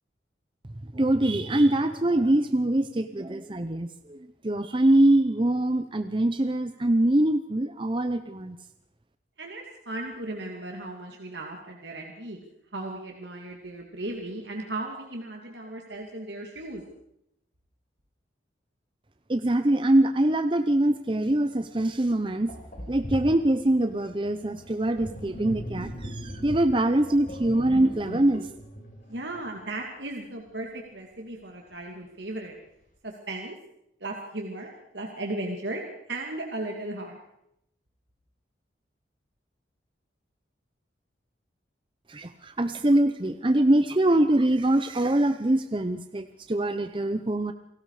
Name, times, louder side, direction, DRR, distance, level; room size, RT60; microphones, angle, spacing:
voice 1, 0.9-4.2 4.4-8.6 19.3-22.5 22.9-28.5 42.1-47.5, right 1 dB, 25° right, 9 dB, 0.8 m, -23 dB
voice 2, 9.4-12.4 12.7-16.8 27.1-27.2 29.1-32.5 33.0-33.6 34.0-37.2, right 2 dB, 75° right, 1 dB, 2.6 m, -36 dB
Sink (filling or washing), 21.8-21.9 22.5-29.8, equal, 45° left, 5.4 m, -39 dB
29.0 x 18.5 x 5.0 m, 0.80 s
head